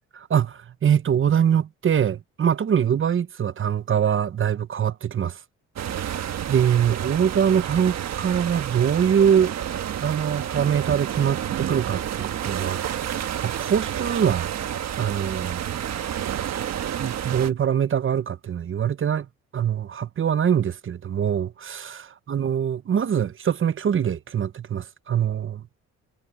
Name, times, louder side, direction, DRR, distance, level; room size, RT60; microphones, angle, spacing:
voice 1, 0.1-5.4 6.0-9.5 10.0-14.5 15.0-16.0 17.0-19.3 19.5-25.6, right 8 dB, 45° right, 0.9 m, -23 dB
sound 1, 5.8-17.5, right 10 dB, 60° right, 1.4 m, -30 dB
cardioid pair, 90°, 30 cm